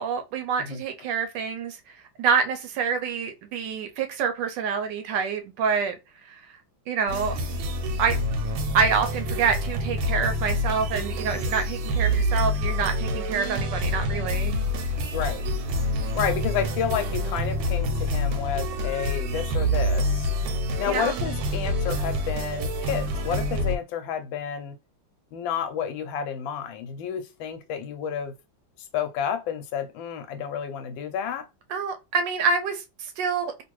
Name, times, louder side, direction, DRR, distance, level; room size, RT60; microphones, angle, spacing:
voice 1, 0.0-1.8 2.2-6.0 6.3-6.4 6.9-7.3 8.0-8.2 8.7-14.6 20.9-21.1 31.7-33.6, right 6 dB, 75° right, 1.1 m, -26 dB
sound 1, 7.1-23.8, equal, 90° right, 1.5 m, -27 dB
voice 2, 15.1-15.4 16.1-20.3 20.8-24.8 25.3-28.3 28.8-31.5, left 8 dB, 75° left, 1.3 m, -30 dB
3.1 x 2.5 x 3.0 m
omnidirectional pair, 2.2 m